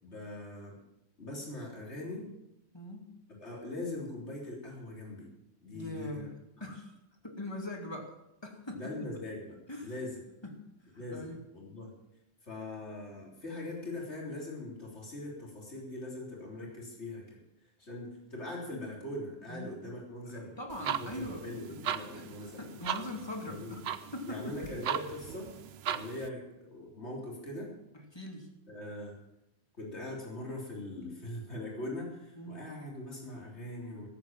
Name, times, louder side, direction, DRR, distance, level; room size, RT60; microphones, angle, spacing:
voice 1, 0.0-0.8 1.2-2.3 3.3-5.3 5.6-6.3 8.7-10.2 11.0-11.9 12.4-17.4 17.8-20.6 20.9-22.8 23.4-23.8 24.3-25.5 25.9-27.7 28.7-29.2 29.8-34.1, left 1 dB, 80° left, -3 dB, 3.9 m, -41 dB
voice 2, 2.7-3.1 5.7-6.4 6.6-6.9 7.2-8.9 9.7-9.9 10.4-10.6 10.9-11.4 19.5-19.7 20.3-21.8 22.1-23.9 24.1-24.7 27.9-28.5 32.4-32.7, left 1 dB, 25° left, 1 dB, 2.6 m, -42 dB
sound 1, 20.7-26.3, right 9 dB, 70° right, 0.9 m, -38 dB
18.0 x 8.5 x 7.4 m, 0.87 s
omnidirectional pair, 1.1 m